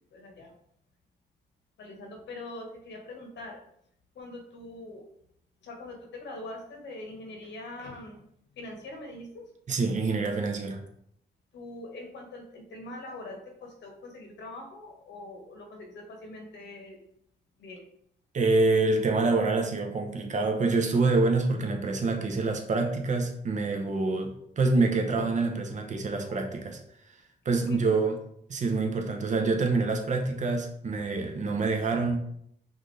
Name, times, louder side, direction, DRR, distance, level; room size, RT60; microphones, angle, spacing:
voice 1, 0.1-0.5 1.8-3.6 4.1-5.0 5.6-8.2 8.6-9.4 11.5-17.0 17.6-17.8 26.0-26.3 27.6-27.8, left 2 dB, 75° left, 2 dB, 1.2 m, -43 dB
voice 2, 9.7-10.8 18.3-26.8 27.4-28.2 28.5-32.2, right 3 dB, 40° right, 4 dB, 0.7 m, -26 dB
5.6 x 2.6 x 3.2 m, 0.71 s
cardioid pair, 110°, 18 cm